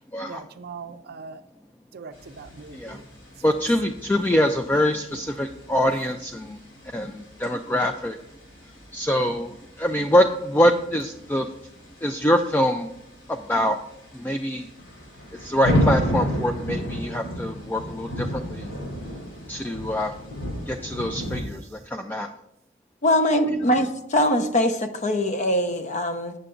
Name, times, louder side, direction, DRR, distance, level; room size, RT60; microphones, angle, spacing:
voice 1, 0.3-1.4 1.9-3.0 7.4-7.5, right 5 dB, 55° right, 10 dB, 0.5 m, -41 dB
sound 1, 2.1-21.4, equal, 80° left, 3.3 m, -33 dB
voice 2, 3.4-6.6 6.9-8.2 8.9-11.5 12.0-12.9 13.3-13.8 14.1-14.7 15.4-18.7 19.5-20.1 20.7-22.3 23.5-23.6, equal, 10° left, 4 dB, 0.3 m, -24 dB
voice 3, 23.0-26.3, left 1 dB, 40° left, 8 dB, 0.7 m, -22 dB
8.0 x 6.7 x 3.7 m, 0.83 s
head